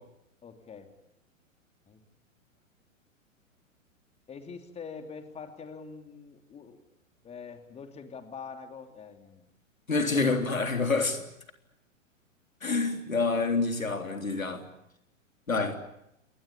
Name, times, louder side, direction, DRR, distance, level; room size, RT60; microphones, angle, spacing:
voice 1, 0.4-0.9 1.9-2.0 4.3-6.8 7.2-9.4 10.1-10.2, left 5 dB, 15° left, 3.0 m, -44 dB
voice 2, 9.9-11.2 12.6-14.6 15.5-15.8, left 3 dB, 85° left, 3.7 m, -27 dB
28.0 x 21.5 x 8.5 m
figure-of-eight pair, 110°, 40 cm